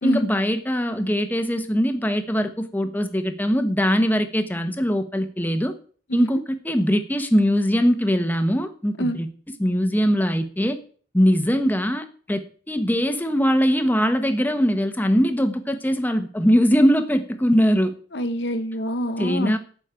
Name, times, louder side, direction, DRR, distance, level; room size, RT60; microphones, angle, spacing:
voice 1, 0.0-5.7 6.1-9.3 9.6-10.8 11.1-17.9 19.2-19.6, equal, 10° left, 1.1 m, -21 dB
voice 2, 18.1-19.6, equal, 70° left, 1.1 m, -26 dB
12.0 x 5.2 x 8.8 m
head